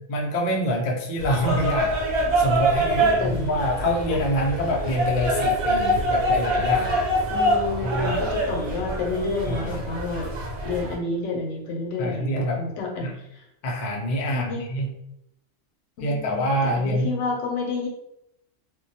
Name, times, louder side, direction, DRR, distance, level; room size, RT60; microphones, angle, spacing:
voice 1, 0.1-7.0 7.8-8.2 9.4-9.8 12.0-12.6 13.0-13.1 13.6-14.9 16.0-17.1, equal, 60° left, -1 dB, 0.5 m, -26 dB
sound 1, 1.2-10.9, right 1 dB, 70° right, 1.0 m, -25 dB
voice 2, 3.0-3.6 7.3-10.3 10.6-13.4 14.3-14.7 16.0-17.9, left 3 dB, 80° left, 0 dB, 0.9 m, -30 dB
2.2 x 2.1 x 2.6 m, 0.81 s
omnidirectional pair, 1.3 m